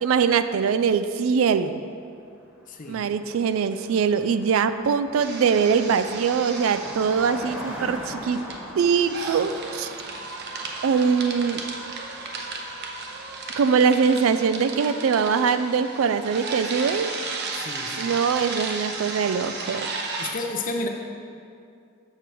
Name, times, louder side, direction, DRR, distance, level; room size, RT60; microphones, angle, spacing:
voice 1, 0.0-1.8 2.9-8.4 8.8-9.9 10.8-11.6 13.5-17.1 18.0-19.9, right 6 dB, 75° right, 11 dB, 0.3 m, -22 dB
Car passing by, 2.4-2.5 2.7-13.7, equal, 5° right, 1.2 m, -41 dB
voice 2, 2.7-3.1 17.5-18.2 20.2-20.9, left 2 dB, 40° left, 4 dB, 0.6 m, -32 dB
sound 1, 5.2-7.8 8.1-20.3, right 3 dB, 55° right, 0.7 m, -34 dB
6.6 x 6.1 x 4.5 m, 2.4 s
head